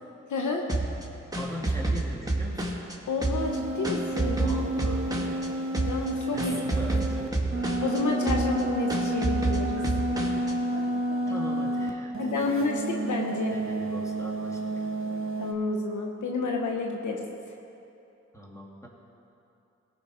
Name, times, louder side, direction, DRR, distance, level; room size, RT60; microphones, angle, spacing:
voice 1, 0.3-0.6 3.1-4.6 4.9-5.0 5.9-6.5 6.9-7.0 7.8-9.8 12.2-13.6 15.4-17.3, left 3 dB, 70° left, 1 dB, 1.1 m, -30 dB
sound 1, 0.7-2.9 3.2-5.5 5.7-6.1 6.4-8.0 8.3-8.6 8.9-10.5, right 2 dB, 10° right, 2.1 m, -29 dB
voice 2, 1.4-2.8 4.3-5.1 6.3-7.6 11.3-12.6 13.5-14.9 18.3-18.9, equal, 10° left, -2 dB, 2.6 m, -41 dB
sound 2, 3.4-11.9 12.1-15.5, right 1 dB, 40° right, 1.7 m, -30 dB
17.0 x 5.8 x 5.0 m, 2.8 s
supercardioid pair, 40°, 31 cm